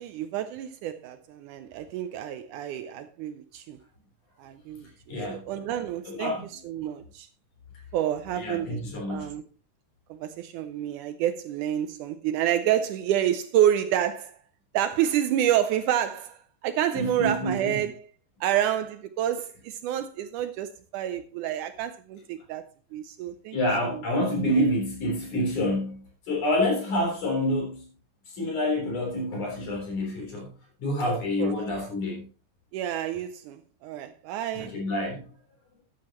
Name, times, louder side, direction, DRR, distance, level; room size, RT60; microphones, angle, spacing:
voice 1, 0.0-3.8 4.4-6.3 6.6-7.3 7.9-8.8 9.1-9.4 10.1-14.4 14.7-18.1 18.4-23.6 23.8-24.0 31.1-31.5 32.7-34.8, right 11 dB, 75° right, 1.9 m, -28 dB
voice 2, 5.1-5.4 6.1-6.5 8.4-9.3 16.9-17.8 23.5-27.9 28.3-30.5 30.8-32.3 34.5-35.3, left 1 dB, 60° left, 5.2 m, -27 dB
13.0 x 9.5 x 3.0 m
omnidirectional pair, 3.9 m